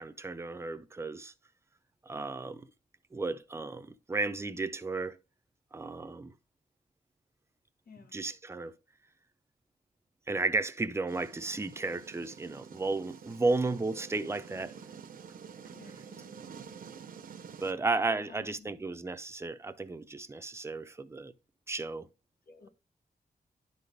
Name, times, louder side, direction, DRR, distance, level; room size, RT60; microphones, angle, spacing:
voice 1, 0.0-1.3 2.1-2.7 3.1-5.2 5.7-6.3 8.1-8.7 10.3-14.7 17.6-21.3 21.7-22.1, right 3 dB, 15° right, 0.5 m, -33 dB
voice 2, 7.9-8.2 15.7-16.5 18.1-18.7 22.5-22.7, left 4 dB, 85° left, 1.2 m, -53 dB
sound 1, 11.1-17.7, right 6 dB, 70° right, 0.6 m, -48 dB
11.0 x 3.9 x 3.3 m
wide cardioid pair, 165°, 15 cm